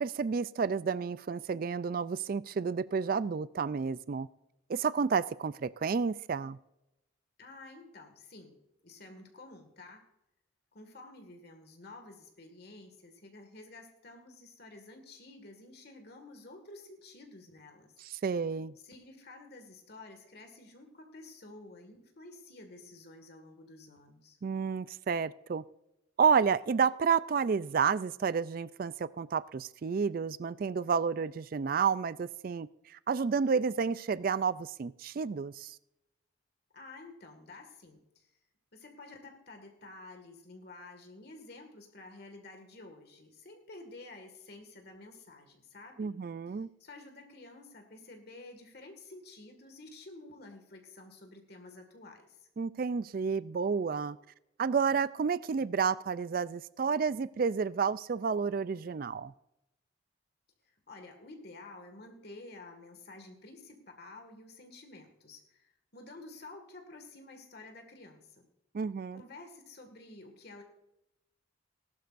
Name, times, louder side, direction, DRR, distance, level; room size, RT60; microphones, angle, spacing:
voice 1, 0.0-4.3 4.7-6.6 18.0-18.7 24.4-25.6 26.2-35.8 46.0-46.7 52.6-54.2 54.6-59.3 68.7-69.2, right 5 dB, 45° right, 17 dB, 0.3 m, -30 dB
voice 2, 7.4-8.6 8.8-10.0 10.7-17.9 18.8-24.4 36.7-38.3 38.7-46.1 46.5-52.5 60.6-68.5 69.1-70.6, left 2 dB, 50° left, 4 dB, 1.9 m, -51 dB
19.0 x 12.0 x 2.6 m, 0.87 s
head